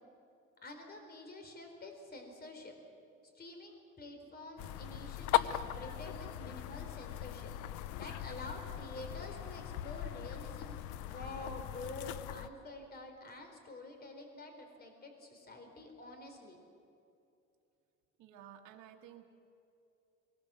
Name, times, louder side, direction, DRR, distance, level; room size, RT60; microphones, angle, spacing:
voice 1, 0.6-2.8 3.3-7.5 8.0-16.6, left 2 dB, 30° left, 5 dB, 3.9 m, -48 dB
sound 1, 4.6-12.5, left 13 dB, 90° left, 0.7 m, -39 dB
voice 2, 18.2-19.2, right 10 dB, 80° right, 1 dB, 1.7 m, -53 dB
21.5 x 19.0 x 7.5 m, 2.6 s
cardioid pair, 130°, 30 cm